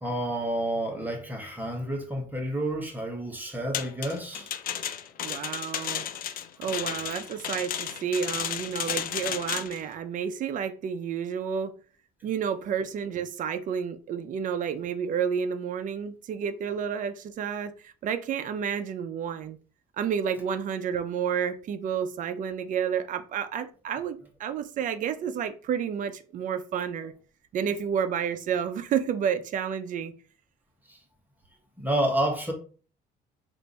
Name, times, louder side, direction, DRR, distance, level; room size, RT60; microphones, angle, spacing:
voice 1, 0.0-4.5 6.6-6.7 30.9-31.0 31.8-32.5, right 1 dB, 10° right, 1.2 m, -29 dB
sound 1, 3.7-9.8, left 10 dB, 55° left, 0.5 m, -33 dB
voice 2, 5.2-6.0 6.6-11.8 12.2-19.6 20.0-27.1 27.5-30.1, right 7 dB, 50° right, 0.5 m, -30 dB
3.3 x 2.6 x 4.1 m
cardioid pair, 110°, 17 cm